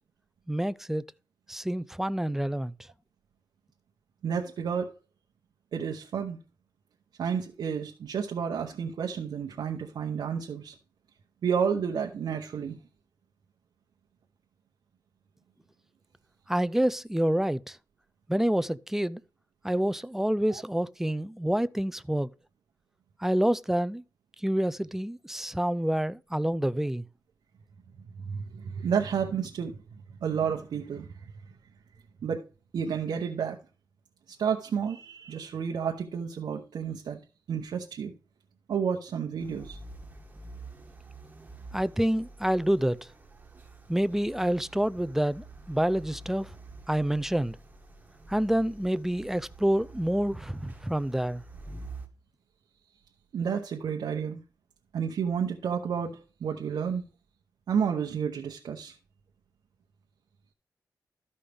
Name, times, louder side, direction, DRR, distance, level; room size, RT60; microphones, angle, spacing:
voice 1, 0.5-1.0 1.5-2.7 16.5-17.8 18.3-19.2 19.6-22.3 23.2-24.0 24.4-27.1 41.7-43.1 43.9-46.5 46.9-47.6 48.3-51.4, right 1 dB, 5° right, 0.3 m, -27 dB
voice 2, 4.2-4.9 5.7-6.4 7.2-10.8 11.4-12.8 20.5-20.6 28.3-29.8 30.2-31.3 32.2-32.4 32.7-33.6 34.3-37.2 37.5-38.1 38.7-39.8 53.3-54.4 54.9-57.0 57.7-59.0, right 7 dB, 85° right, 0.9 m, -31 dB
sound 1, 39.4-52.1, right 2 dB, 20° right, 1.5 m, -47 dB
13.0 x 5.4 x 3.4 m
wide cardioid pair, 100°, 7 cm